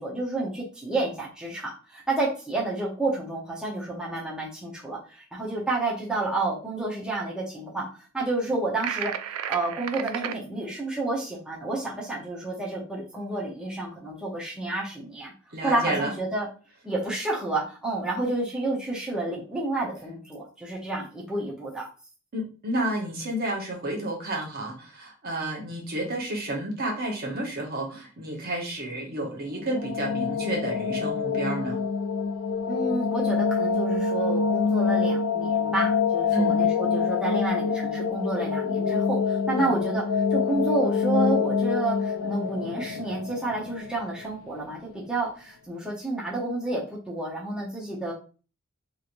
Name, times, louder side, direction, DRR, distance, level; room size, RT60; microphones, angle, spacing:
voice 1, 0.0-7.9 8.1-15.3 15.6-16.5 16.8-21.9 32.7-40.0 40.3-48.1, right 2 dB, 5° right, -5 dB, 0.8 m, -30 dB
sound 1, 8.8-10.4, right 8 dB, 85° right, 0.3 m, -32 dB
voice 2, 15.5-16.1 22.3-31.8 36.3-36.6 39.6-39.8, right 1 dB, 50° right, -1 dB, 0.9 m, -30 dB
sound 2, 29.5-44.4, left 5 dB, 85° left, 0.4 m, -26 dB
3.1 x 2.9 x 2.5 m, 0.36 s
head